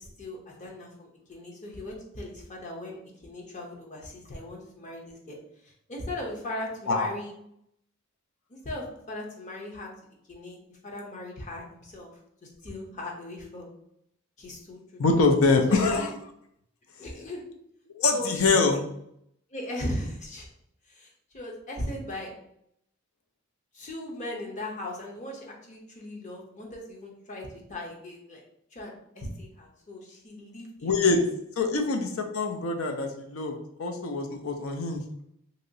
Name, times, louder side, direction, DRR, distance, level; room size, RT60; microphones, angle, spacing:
voice 1, 0.0-5.4 5.6-7.3 8.5-9.9 10.3-12.1 12.4-13.7 14.4-15.0 15.7-16.1 17.0-17.5 18.1-18.7 19.5-20.5 20.9-22.3 23.7-28.5 28.7-31.2 31.7-31.8, left 1 dB, 35° left, -1 dB, 0.7 m, -38 dB
voice 2, 15.0-16.1 17.9-18.8 30.8-31.2 31.6-35.0, left 3 dB, 90° left, 4 dB, 0.5 m, -24 dB
3.0 x 2.7 x 2.7 m, 0.74 s
head